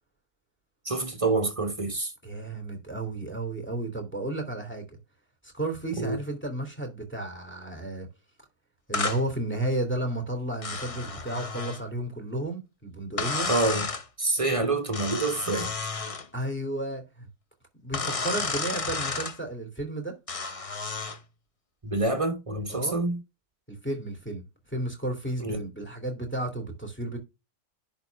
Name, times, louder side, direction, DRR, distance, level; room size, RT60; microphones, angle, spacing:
voice 1, 0.8-2.1 5.9-6.2 13.5-13.9 14.2-15.7 21.8-23.2 25.4-25.6, right 2 dB, 25° right, 1.0 m, -27 dB
voice 2, 2.2-4.9 5.4-8.1 8.9-13.5 16.3-17.3 17.8-20.2 22.7-23.0 23.7-27.2, right 1 dB, 5° left, 2.8 m, -33 dB
sound 1, 8.9-9.2 10.6-11.8 13.2-14.0 14.9-16.3 17.9-19.4 20.3-21.2, left 4 dB, 35° left, 0.6 m, -32 dB
11.0 x 3.8 x 3.4 m
omnidirectional pair, 1.6 m